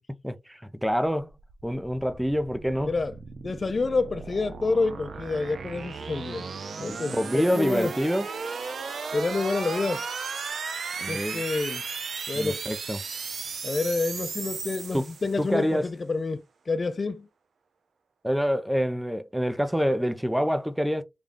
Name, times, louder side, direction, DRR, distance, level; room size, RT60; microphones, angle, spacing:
voice 1, 0.2-1.3 1.6-2.9 6.8-8.3 11.0-11.4 12.3-13.0 14.9-15.1 15.4-15.9 18.2-21.0, equal, 5° right, 0.5 m, -26 dB
sound 1, 1.3-15.6, right 5 dB, 80° right, 0.5 m, -36 dB
voice 2, 3.4-6.5 6.8-7.9 9.1-10.0 11.1-11.8 12.3-12.6 13.6-17.3, left 3 dB, 50° left, 0.4 m, -28 dB
3.5 x 2.3 x 3.7 m
cardioid pair, 65°, 0 cm